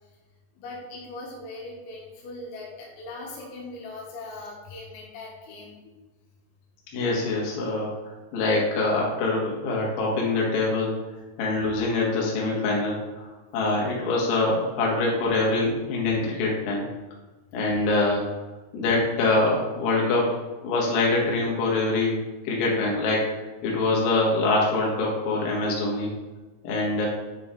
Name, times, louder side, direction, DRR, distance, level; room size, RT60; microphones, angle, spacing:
voice 1, 0.6-6.0 17.8-18.0, left 2 dB, 80° left, -3 dB, 4.0 m, -40 dB
voice 2, 6.9-10.9 11.4-13.3 13.5-16.9 17.5-18.3 18.7-20.4 20.6-22.2 22.4-26.1 26.6-27.1, left 2 dB, 60° left, -3 dB, 3.5 m, -24 dB
10.0 x 4.5 x 3.8 m, 1.2 s
omnidirectional pair, 6.0 m